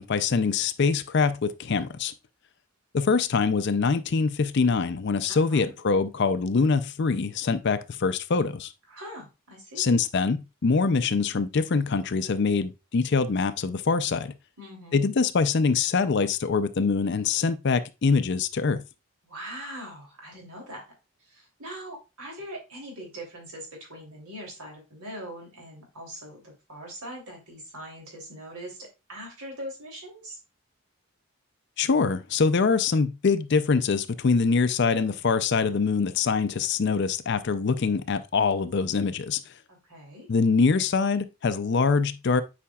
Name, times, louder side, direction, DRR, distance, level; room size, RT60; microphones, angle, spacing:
voice 1, 0.0-2.1 2.9-8.7 9.8-14.3 14.9-18.8 31.8-39.4 40.3-42.4, left 4 dB, 50° left, 0.5 m, -24 dB
voice 2, 5.3-5.7 8.9-9.9 14.6-15.0 19.2-20.8 21.3-30.4 39.7-40.3, equal, 85° right, 3.0 m, -41 dB
8.5 x 5.0 x 2.3 m
head